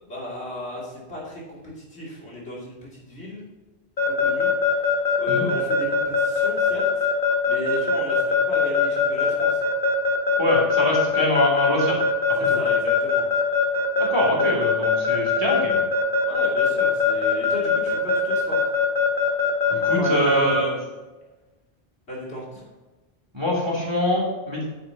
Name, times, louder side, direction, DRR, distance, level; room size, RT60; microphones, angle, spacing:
voice 1, 0.0-3.5 4.1-4.5 5.2-7.1 7.5-9.6 12.4-13.3 16.3-18.7 19.8-20.8 22.1-22.6, left 1 dB, 80° left, -5 dB, 3.2 m, -34 dB
Keyboard (musical) / Alarm, 4.0-20.6, left 5 dB, 55° left, 1.3 m, -21 dB
voice 2, 10.4-12.0 12.3-12.6 14.0-15.8 19.7-20.7 23.3-24.7, left 1 dB, 25° right, -4 dB, 2.8 m, -24 dB
11.0 x 8.8 x 2.9 m, 1.2 s
omnidirectional pair, 1.1 m